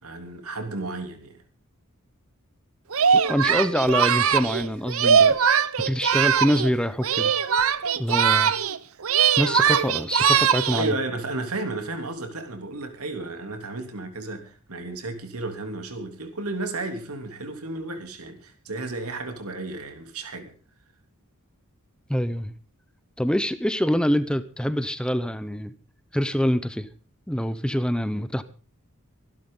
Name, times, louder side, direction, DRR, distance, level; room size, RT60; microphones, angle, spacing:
voice 1, 0.0-1.4 10.7-20.5, right 2 dB, 85° right, 3.0 m, -33 dB
Singing, 2.9-6.7 7.0-8.8 9.0-10.9, right 7 dB, 70° right, 0.8 m, -21 dB
voice 2, 3.3-5.4 5.8-7.3 8.0-8.5 9.4-11.0 22.1-22.5 23.2-25.7 26.1-26.9 27.3-28.4, equal, 5° left, 0.8 m, -25 dB
24.5 x 12.0 x 3.8 m
head